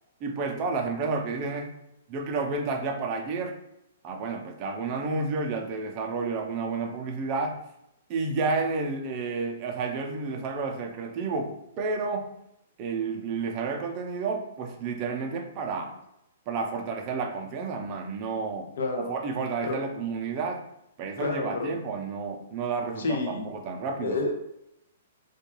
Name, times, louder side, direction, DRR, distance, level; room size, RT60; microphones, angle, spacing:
voice 1, 0.2-1.7 2.1-3.6 4.0-7.6 8.1-12.3 12.8-15.9 16.5-20.6 21.0-24.2, right 4 dB, 35° right, 3 dB, 0.4 m, -31 dB
voice 2, 18.8-19.2 19.6-19.8 21.2-21.7 23.0-23.5 24.0-24.3, left 3 dB, 80° left, 3 dB, 0.5 m, -29 dB
2.3 x 2.3 x 2.9 m, 0.81 s
hypercardioid pair, 145°, 0 cm